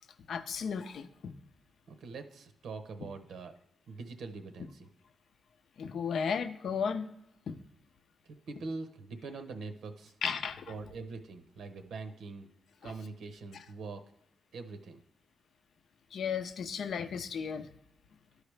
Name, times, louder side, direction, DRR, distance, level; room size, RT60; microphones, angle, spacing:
voice 1, 0.3-1.3 5.8-7.1 7.5-7.6 10.2-10.7 12.8-12.9 16.1-17.7, left 6 dB, 65° left, 10 dB, 0.6 m, -34 dB
voice 2, 1.9-3.6 3.9-4.9 8.5-10.1 10.7-12.5 12.8-14.0 14.5-15.0, right 3 dB, 80° right, 8 dB, 0.8 m, -43 dB
12.5 x 4.8 x 3.3 m, 0.79 s
wide cardioid pair, 145°, 0 cm